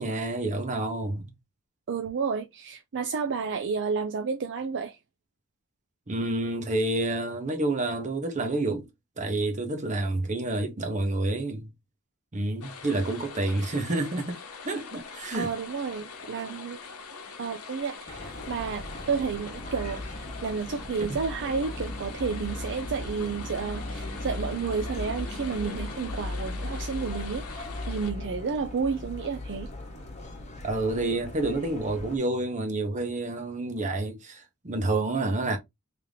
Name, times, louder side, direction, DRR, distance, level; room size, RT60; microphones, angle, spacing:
voice 1, 0.0-1.3 6.1-8.9 9.2-11.7 12.3-14.4 14.6-15.5 21.1-21.2 30.6-35.6, right 2 dB, 35° right, 1.0 m, -29 dB
voice 2, 1.9-5.0 15.3-16.8 17.4-29.7, right 5 dB, 55° right, 0.5 m, -31 dB
sound 1, 12.6-28.1, left 5 dB, 85° left, 1.0 m, -43 dB
sound 2, 18.1-32.2, left 1 dB, 30° left, 1.3 m, -37 dB
3.4 x 2.9 x 3.6 m
head